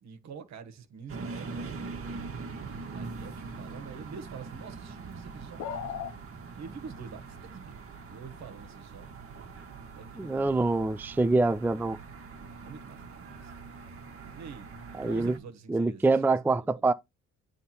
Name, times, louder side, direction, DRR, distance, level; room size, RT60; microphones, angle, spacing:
voice 1, 0.0-1.9 2.6-6.1 6.6-7.8 8.0-9.2 9.9-10.5 12.6-13.5 14.3-16.0 16.6-16.9, right 5 dB, 65° right, 1.5 m, -46 dB
sound 1, 1.1-15.4, right 4 dB, 45° right, 1.5 m, -43 dB
sound 2, 5.6-6.2, left 8 dB, 60° left, 0.9 m, -35 dB
voice 2, 10.2-12.0 15.0-15.4 15.7-16.9, right 3 dB, 5° right, 0.4 m, -25 dB
9.2 x 3.6 x 4.3 m
cardioid pair, 90°, 30 cm